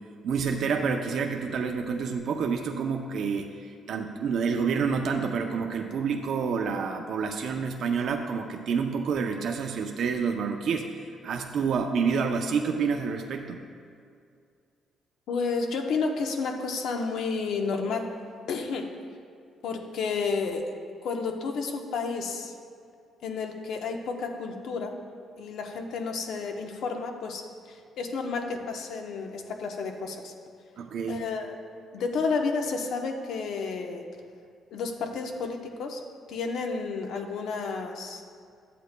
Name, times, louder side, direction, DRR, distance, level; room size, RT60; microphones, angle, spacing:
voice 1, 0.2-13.6 30.8-31.2, right 5 dB, 70° right, 4 dB, 0.5 m, -28 dB
voice 2, 15.3-18.1 18.5-18.9 19.6-20.7 21.0-22.5 23.2-25.0 25.4-27.4 27.7-30.3 31.1-31.6 31.9-34.1 34.7-36.0 36.3-38.2, left 4 dB, 75° left, 4 dB, 0.9 m, -31 dB
12.5 x 8.4 x 2.2 m, 2.3 s
cardioid pair, 90°, 0 cm